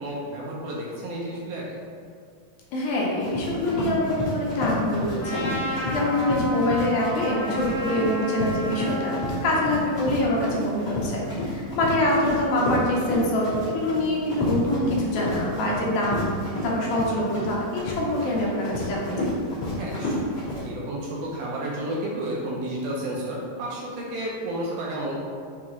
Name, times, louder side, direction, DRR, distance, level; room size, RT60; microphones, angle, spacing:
voice 1, 0.0-1.8 5.8-6.0 19.8-20.2 20.6-25.2, right 1 dB, 80° right, -4 dB, 1.9 m, -31 dB
voice 2, 2.7-16.3 16.6-19.3, left 1 dB, 75° left, -4 dB, 1.9 m, -25 dB
Run, 3.2-20.6, left 1 dB, 40° left, 1.5 m, -30 dB
Trumpet, 5.2-9.5, right 1 dB, 60° left, 2.0 m, -31 dB
5.8 x 2.4 x 2.9 m, 2.2 s
omnidirectional pair, 3.9 m